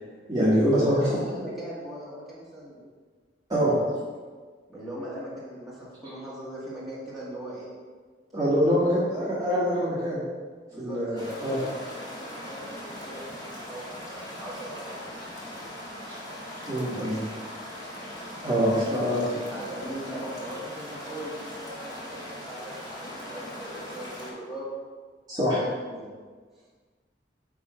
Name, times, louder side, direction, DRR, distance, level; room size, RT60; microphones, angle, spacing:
voice 1, 0.3-1.0 3.5-3.7 8.3-10.2 10.8-11.6 16.6-17.2 18.4-19.2 25.3-25.6, equal, 20° right, -10 dB, 1.8 m, -24 dB
voice 2, 0.8-2.8 3.7-4.0 4.7-7.7 9.1-9.4 10.7-11.0 11.3-15.6 16.8-17.3 17.7-17.9 18.5-21.4 21.6-22.2 22.5-24.7 25.9-26.1, right 1 dB, ahead, -9 dB, 2.0 m, -40 dB
sound 1, 11.2-24.3, left 1 dB, 20° left, 1.6 m, -40 dB
8.6 x 3.7 x 5.0 m, 1.5 s
head